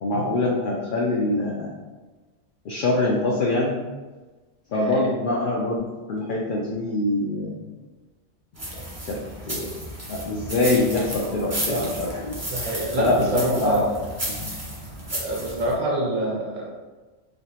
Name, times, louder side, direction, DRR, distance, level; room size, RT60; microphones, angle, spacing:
voice 1, 0.0-1.7 2.6-3.8 4.7-7.6 8.7-9.2 9.4-9.7 10.1-12.4 13.0-13.8 14.4-14.6, left 2 dB, 60° left, -3 dB, 0.5 m, -24 dB
sound 1, 8.5-15.7, right 1 dB, 20° right, 0.5 m, -33 dB
voice 2, 12.5-13.9 15.1-16.7, right 1 dB, 70° right, -3 dB, 1.2 m, -26 dB
3.3 x 2.8 x 2.8 m, 1.3 s
omnidirectional pair, 1.3 m